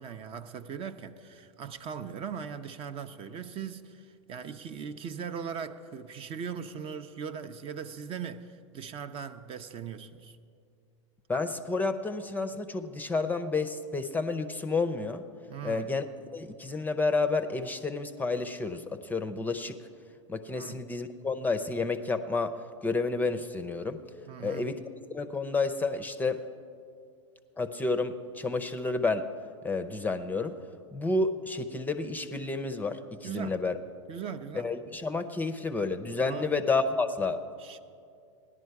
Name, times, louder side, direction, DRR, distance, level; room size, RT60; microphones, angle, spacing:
voice 1, 0.0-10.4 15.5-15.9 20.5-20.8 24.3-24.7 33.2-33.6 34.1-34.7 36.3-36.6 37.6-37.8, right 7 dB, 35° right, 0.6 m, -39 dB
voice 2, 11.3-15.2 15.6-16.0 16.3-19.8 20.3-24.0 24.4-24.8 25.1-26.4 27.6-29.3 29.6-30.6 30.9-33.8 34.5-37.4, left 3 dB, 10° left, 0.6 m, -30 dB
16.5 x 11.0 x 4.7 m
hypercardioid pair, 100°, 17 cm